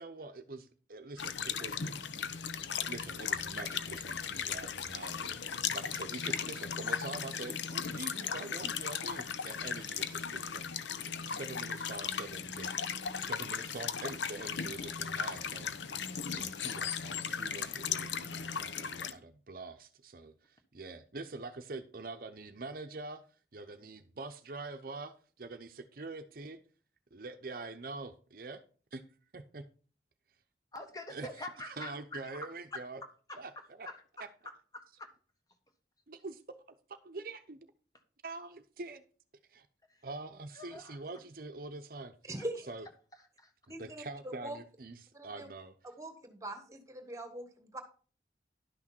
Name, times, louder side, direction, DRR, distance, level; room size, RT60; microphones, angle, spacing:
voice 1, 0.0-1.8 2.8-10.8 11.1-15.9 16.3-23.2 23.5-26.6 27.1-28.6 28.9-29.0 29.3-29.6 31.1-31.3 31.8-33.0 33.4-33.5 33.8-33.9 36.1-36.4 36.9-37.7 38.2-39.0 39.5-39.7 40.0-42.1 42.7-42.8 43.8-45.7, right 3 dB, 50° right, 8 dB, 0.7 m, -45 dB
sound 1, 1.2-19.1, left 7 dB, 85° left, 0.8 m, -37 dB
voice 2, 30.7-32.3 32.7-32.8 33.3-34.2 34.7-35.1 39.9-40.1 40.5-41.0 42.4-42.5 43.4-43.5, left 2 dB, 20° left, 5 dB, 1.4 m, -45 dB
voice 3, 42.2-42.6 43.7-44.6 45.1-45.5 46.0-47.8, right 1 dB, 20° right, 6 dB, 1.5 m, -42 dB
11.5 x 6.2 x 4.4 m, 0.40 s
head